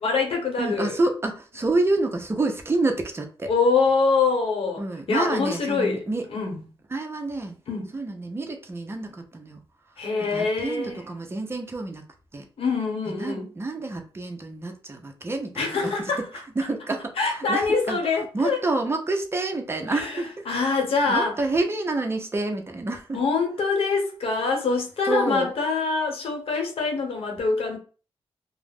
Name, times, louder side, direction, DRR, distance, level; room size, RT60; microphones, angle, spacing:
voice 1, 0.0-1.0 3.5-4.8 5.1-6.0 6.3-6.6 7.7-7.9 10.0-11.0 12.6-13.5 15.6-16.2 17.2-18.6 19.9-21.3 23.1-27.8, left 4 dB, 70° left, 0.9 m, -24 dB
voice 2, 0.6-3.5 4.8-6.3 6.9-7.6 7.9-9.6 9.9-12.0 12.3-12.5 13.1-15.9 16.6-20.4 21.0-23.2 25.0-25.5, right 2 dB, 25° right, 0.5 m, -28 dB
2.3 x 2.0 x 3.3 m
cardioid pair, 100°, 10 cm